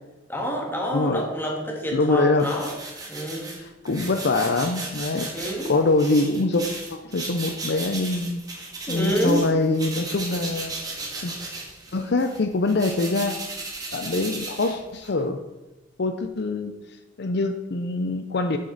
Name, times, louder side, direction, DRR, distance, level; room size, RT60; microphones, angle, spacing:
voice 1, 0.3-2.7 3.1-3.6 5.3-5.7 8.9-9.4, equal, 10° left, -1 dB, 1.8 m, -27 dB
voice 2, 0.9-1.2 1.9-2.5 3.6-5.3 5.6-6.6 6.9-8.4 8.9-10.7 11.2-11.3 11.9-13.4 13.9-15.4 16.0-16.7 17.2-18.6, left 3 dB, 60° left, 7 dB, 0.5 m, -24 dB
sound 1, 2.4-9.5 9.7-15.2, right 3 dB, 20° right, 1.9 m, -36 dB
8.8 x 7.7 x 4.0 m, 1.1 s
head